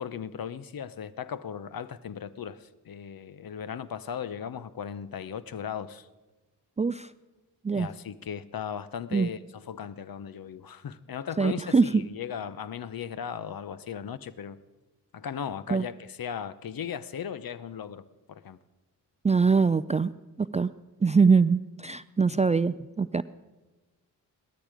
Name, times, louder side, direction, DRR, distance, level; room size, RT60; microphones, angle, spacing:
voice 1, 0.0-6.1 7.7-14.6 15.1-18.6 22.3-22.4, left 8 dB, 55° left, 0.9 m, -37 dB
voice 2, 6.8-7.1 7.6-7.9 9.1-9.3 11.4-12.0 15.7-15.8 19.2-20.1 20.4-20.7 21.0-23.2, right 5 dB, 15° right, 0.4 m, -23 dB
17.0 x 13.0 x 5.0 m
supercardioid pair, 40°, 43 cm